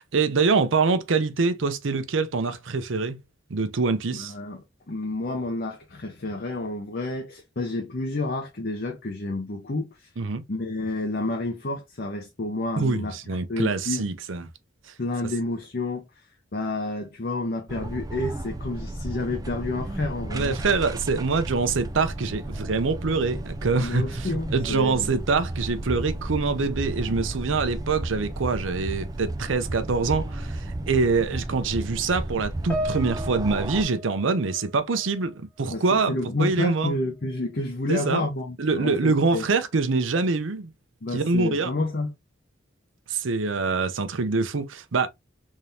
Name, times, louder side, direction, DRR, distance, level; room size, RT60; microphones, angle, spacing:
voice 1, 0.0-3.2 3.5-4.3 10.2-10.4 12.8-14.4 20.3-35.3 35.6-36.1 36.4-36.9 37.9-38.2 38.6-40.7 41.1-41.7 43.1-45.1, right 4 dB, 80° right, 0.6 m, -25 dB
voice 2, 4.1-10.1 10.5-13.2 13.5-14.0 15.0-16.1 16.5-20.6 23.7-25.1 27.1-27.2 35.7-39.4 41.0-42.1, left 2 dB, 50° left, 0.7 m, -30 dB
sound 1, 17.7-33.8, right 1 dB, 20° right, 0.3 m, -33 dB
Piano, 32.7-35.3 35.6-35.9 36.7-36.8, equal, 5° left, 1.1 m, -35 dB
3.6 x 3.4 x 2.7 m
head